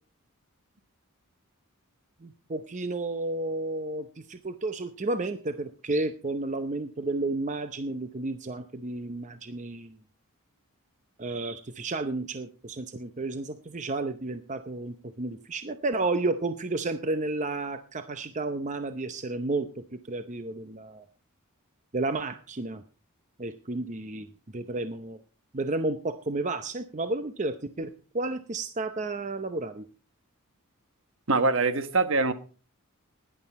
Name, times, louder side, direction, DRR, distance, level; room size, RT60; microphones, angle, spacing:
voice 1, 2.2-9.9 11.2-21.1 21.9-22.8 23.4-25.2 25.5-29.9, right 2 dB, 35° right, 0.7 m, -32 dB
voice 2, 31.3-32.3, right 3 dB, 60° right, 1.3 m, -23 dB
16.5 x 11.0 x 4.2 m
head